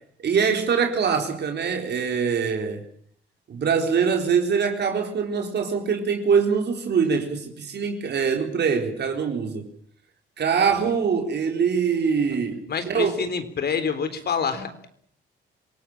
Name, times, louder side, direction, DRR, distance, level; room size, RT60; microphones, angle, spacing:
voice 1, 0.2-2.8 3.5-9.7 10.4-13.1, right 6 dB, 60° right, 4.2 m, -23 dB
voice 2, 12.7-14.9, left 6 dB, 55° left, 3.9 m, -27 dB
26.5 x 18.0 x 8.8 m
cardioid pair, 90°, 20 cm